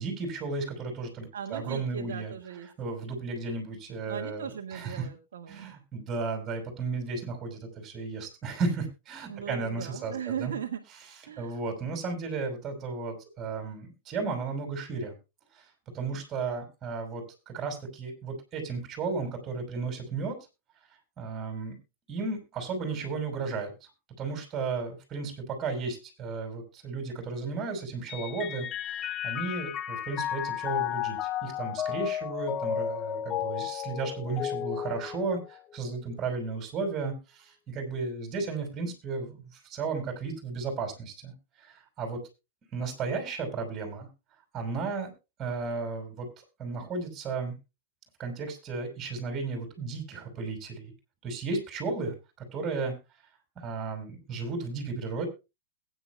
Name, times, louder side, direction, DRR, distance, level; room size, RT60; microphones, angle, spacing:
voice 1, 0.0-2.3 2.8-5.1 5.5-10.5 11.4-15.1 15.9-20.4 21.2-21.8 22.1-23.7 24.2-41.3 41.6-42.2 42.7-44.1 44.5-45.1 45.4-46.3 46.6-47.5 48.2-50.9 51.2-52.9 53.6-55.3, right 4 dB, 25° right, 3 dB, 5.7 m, -34 dB
voice 2, 1.3-2.7 4.1-5.7 9.3-10.8 11.3-11.6, right 8 dB, 65° right, 3 dB, 1.6 m, -38 dB
Mallet percussion, 28.1-35.8, left 10 dB, 25° left, 0.6 m, -33 dB
21.5 x 10.0 x 2.3 m, 0.27 s
hypercardioid pair, 110°, 0 cm